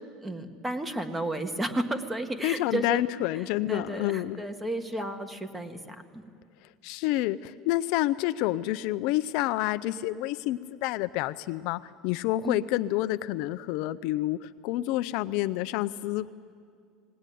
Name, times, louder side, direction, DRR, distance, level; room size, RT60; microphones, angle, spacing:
voice 1, 0.2-3.0 3.7-6.2 12.4-12.6, right 1 dB, 10° right, 8 dB, 1.5 m, -33 dB
voice 2, 2.4-4.4 6.8-16.3, left 16 dB, 65° left, 12 dB, 0.5 m, -28 dB
19.5 x 19.0 x 9.2 m, 2.2 s
supercardioid pair, 130°, 0 cm